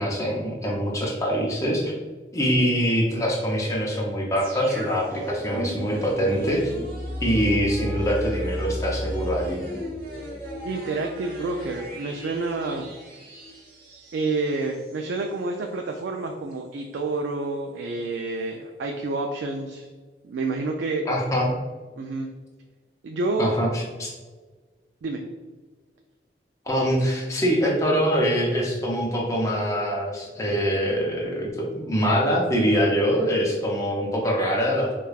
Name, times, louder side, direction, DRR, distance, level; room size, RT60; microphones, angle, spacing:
voice 1, 0.0-1.9 2.3-6.7 7.2-9.6 21.1-21.6 23.4-24.1 26.7-34.9, equal, 20° left, -2 dB, 0.5 m, -24 dB
sound 1, 4.4-15.2 15.5-15.6, equal, 55° right, 1.2 m, -35 dB
voice 2, 10.6-12.9 14.1-19.9 20.2-21.1 22.0-22.3 23.0-23.6 25.0-25.2, right 3 dB, 80° right, 2 dB, 0.3 m, -28 dB
4.8 x 2.2 x 2.3 m, 1.4 s
head